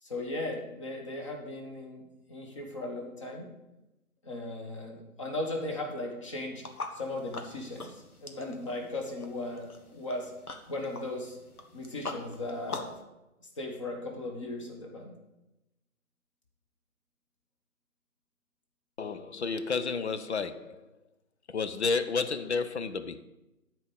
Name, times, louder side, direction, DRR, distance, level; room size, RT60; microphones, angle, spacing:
voice 1, 0.0-3.5 4.2-6.6 6.9-10.3 10.7-11.4 11.7-12.9 13.4-15.1, left 2 dB, 20° left, 1.2 m, -37 dB
sound 1, 6.6-13.0, left 3 dB, 85° left, 1.5 m, -44 dB
voice 2, 19.0-20.9 21.5-23.2, left 4 dB, 50° left, 0.7 m, -31 dB
12.0 x 4.6 x 6.9 m
figure-of-eight pair, 160°, 44 cm